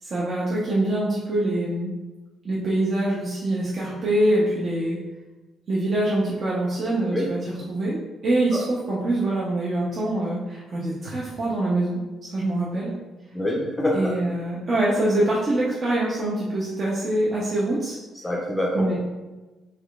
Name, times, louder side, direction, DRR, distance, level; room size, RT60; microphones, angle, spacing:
voice 1, 0.0-1.9 2.4-5.0 5.7-7.4 7.7-8.0 8.2-12.0 12.3-12.9 13.9-18.0 18.7-19.0, right 1 dB, 45° right, -6 dB, 0.7 m, -24 dB
voice 2, 13.3-14.1 18.2-18.9, left 1 dB, 15° left, -3 dB, 0.5 m, -25 dB
3.5 x 3.2 x 2.4 m, 1.2 s
cardioid pair, 90°, 0 cm